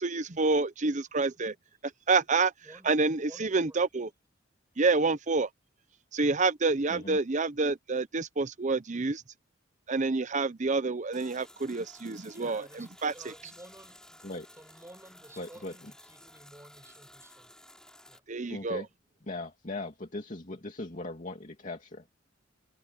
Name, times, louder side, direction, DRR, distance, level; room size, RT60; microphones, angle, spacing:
voice 1, 0.0-1.5 2.1-2.5 2.8-4.1 4.8-5.5 6.1-9.2 9.9-13.3 18.3-18.8, right 3 dB, 40° right, 0.8 m, -28 dB
voice 2, 3.2-3.8 12.3-14.3 14.6-17.5 18.1-18.2, right 1 dB, 15° right, 5.3 m, -53 dB
sound 1, 11.1-18.2, left 1 dB, 5° left, 4.4 m, -54 dB
voice 3, 15.4-15.9 18.5-18.9 19.3-22.1, left 2 dB, 40° left, 2.5 m, -39 dB
head